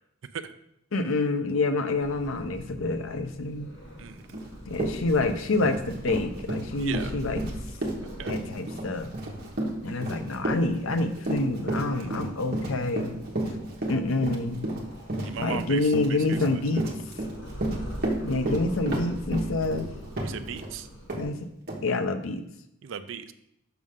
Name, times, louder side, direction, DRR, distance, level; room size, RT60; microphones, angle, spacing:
voice 1, 0.9-3.7 4.7-7.4 8.2-9.1 9.8-13.2 13.9-14.7 15.4-16.9 18.2-19.9 21.1-21.5 21.8-22.4, left 2 dB, 90° left, 8 dB, 0.6 m, -27 dB
Purr, 1.9-21.2, equal, 75° left, 2.3 m, -43 dB
Run, 4.3-4.4 4.7-20.7 21.1-21.2 21.7-21.8, right 1 dB, 50° right, 1.2 m, -31 dB
voice 2, 6.8-7.2 8.0-8.3 12.0-12.1 15.2-16.4 20.2-20.9 22.8-23.3, right 7 dB, 70° right, 10 dB, 0.4 m, -37 dB
6.3 x 5.9 x 3.6 m, 0.79 s
head